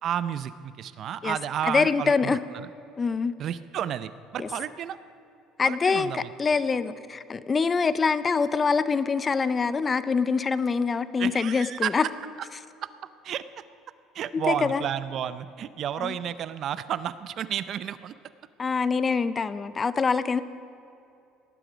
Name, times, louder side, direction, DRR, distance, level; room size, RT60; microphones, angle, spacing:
voice 1, 0.0-2.7 3.4-5.0 5.6-6.3 11.2-11.9 12.8-12.9 13.2-13.5 14.1-18.1, right 10 dB, 50° right, 14 dB, 0.5 m, -31 dB
voice 2, 1.6-2.4 3.0-3.3 4.4-4.5 5.6-12.0 14.3-14.8 16.0-16.1 18.6-20.4, left 5 dB, 25° left, 14 dB, 0.5 m, -25 dB
18.5 x 11.5 x 5.1 m, 2.7 s
supercardioid pair, 105°, 0 cm